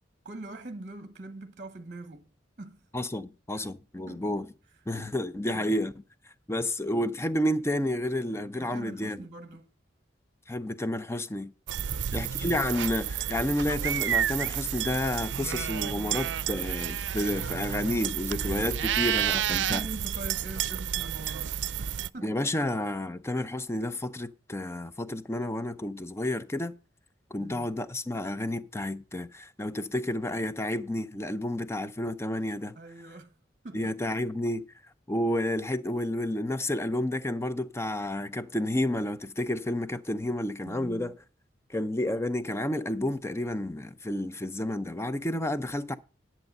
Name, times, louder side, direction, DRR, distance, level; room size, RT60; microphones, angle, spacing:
voice 1, 0.2-2.3 2.6-2.8 3.5-3.7 4.1-4.2 5.0-5.1 5.5-5.6 8.6-9.7 11.8-12.1 19.3-22.3 27.4-27.7 32.7-33.3 33.6-34.0 40.6-41.1, right 2 dB, 45° right, 1.0 m, -43 dB
voice 2, 2.9-4.5 4.9-5.9 6.5-9.2 10.5-11.5 12.1-19.8 22.2-26.8 27.3-32.8 33.7-34.6 35.1-41.2 41.7-46.0, left 1 dB, 15° left, 0.6 m, -30 dB
sound 1, 11.7-22.1, right 9 dB, 80° right, 0.5 m, -30 dB
10.5 x 7.4 x 5.4 m
head